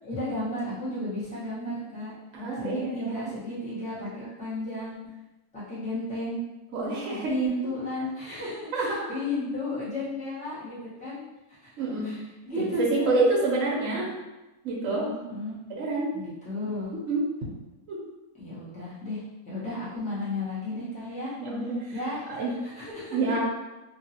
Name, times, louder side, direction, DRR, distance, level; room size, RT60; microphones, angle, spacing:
voice 1, 0.0-2.1 2.5-5.0 5.5-6.4 7.3-11.2 11.6-11.7 12.0-13.2 15.1-15.5 16.1-17.0 18.4-19.2 19.5-21.3 21.9-23.2, left 1 dB, 5° left, -11 dB, 0.9 m, -33 dB
voice 2, 2.3-3.3 6.7-7.3 8.7-9.1 11.8-12.1 12.6-14.1 14.6-15.1 15.7-16.2 17.1-17.3 17.9-18.0 21.4-21.8 22.3-22.6 23.1-23.4, right 2 dB, 65° right, -4 dB, 1.0 m, -27 dB
2.8 x 2.7 x 2.7 m, 1.0 s
omnidirectional pair, 1.6 m